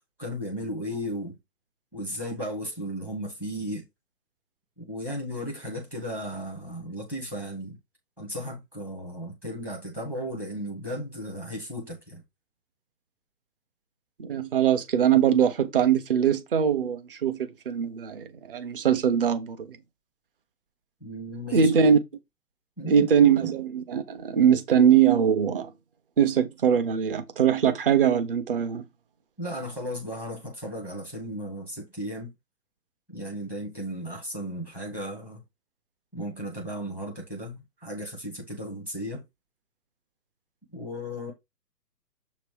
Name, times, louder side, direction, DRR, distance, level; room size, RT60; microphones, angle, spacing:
voice 1, 0.2-1.3 1.9-3.8 4.8-7.8 8.2-12.2 21.0-21.7 22.8-23.1 29.4-32.3 33.1-35.4 36.1-39.2 40.7-41.3, equal, 5° right, 0.8 m, -35 dB
voice 2, 14.2-19.8 21.5-22.0 22.8-25.7 26.2-28.8, right 8 dB, 35° right, 1.0 m, -22 dB
7.1 x 3.1 x 4.9 m
hypercardioid pair, 155°, 48 cm